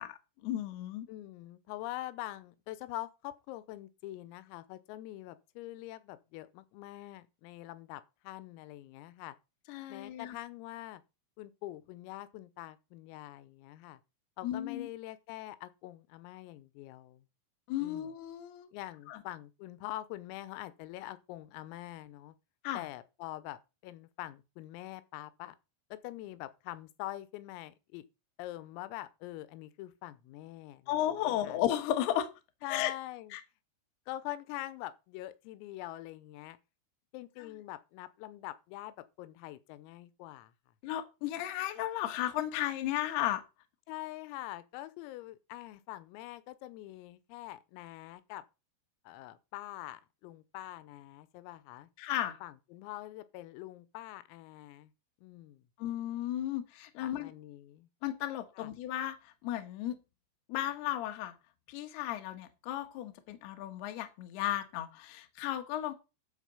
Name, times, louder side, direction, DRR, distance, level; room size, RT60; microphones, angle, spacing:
voice 1, 0.0-1.1 9.7-10.3 14.4-14.9 17.7-18.7 19.1-19.2 22.6-22.8 30.9-32.3 32.7-32.9 33.3-33.4 40.8-43.4 52.0-52.4 55.8-57.3 58.0-60.0 60.5-61.3 61.7-65.9, left 12 dB, 65° left, 2.8 m, -34 dB
voice 2, 1.1-9.4 9.9-11.0 11.4-14.0 14.4-17.2 17.8-18.1 18.7-22.4 22.8-25.6 25.9-28.1 28.4-31.0 31.3-31.6 32.6-33.3 34.1-36.6 37.1-40.5 43.9-48.5 49.1-51.9 52.4-54.9 55.2-55.6 57.0-57.9 58.6-58.7, left 16 dB, 90° left, 3.5 m, -44 dB
12.5 x 4.5 x 6.9 m
omnidirectional pair, 5.9 m